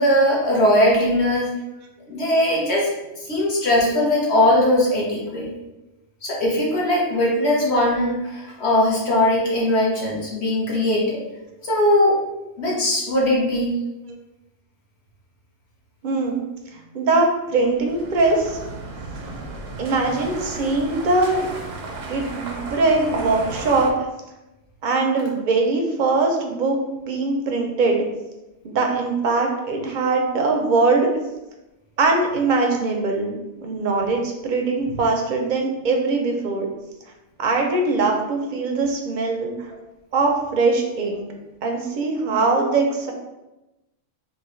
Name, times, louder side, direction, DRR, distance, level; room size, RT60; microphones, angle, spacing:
voice 1, 0.0-1.5 2.1-2.9 3.3-5.5 6.2-11.2 11.6-12.2 12.6-13.7, left 1 dB, 60° left, -4 dB, 1.3 m, -20 dB
voice 2, 16.0-16.4 16.7-18.6 19.8-21.5 22.0-23.9 24.8-26.8 27.1-28.0 28.6-31.1 32.0-33.3 33.6-36.7 37.4-39.7 40.1-41.3 41.6-43.1, right 3 dB, 55° right, 2 dB, 0.6 m, -21 dB
sound 1, 17.6-23.9, right 3 dB, 85° right, 1.0 m, -34 dB
3.5 x 2.8 x 3.1 m, 0.99 s
omnidirectional pair, 1.3 m